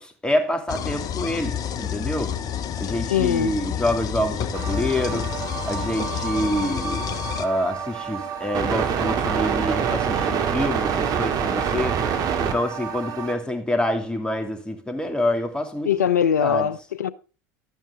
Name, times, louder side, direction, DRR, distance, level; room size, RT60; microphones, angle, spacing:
voice 1, 0.0-2.4 2.8-5.3 5.6-12.0 12.4-16.0 16.4-16.7, left 1 dB, 10° left, 2.7 m, -27 dB
sound 1, 0.7-7.5, left 9 dB, 45° left, 1.0 m, -29 dB
voice 2, 3.1-3.5 15.9-17.1, left 8 dB, 80° left, 0.7 m, -21 dB
sound 2, 4.5-13.3, right 7 dB, 45° right, 2.0 m, -26 dB
12.0 x 9.2 x 3.6 m
figure-of-eight pair, 75°, 9 cm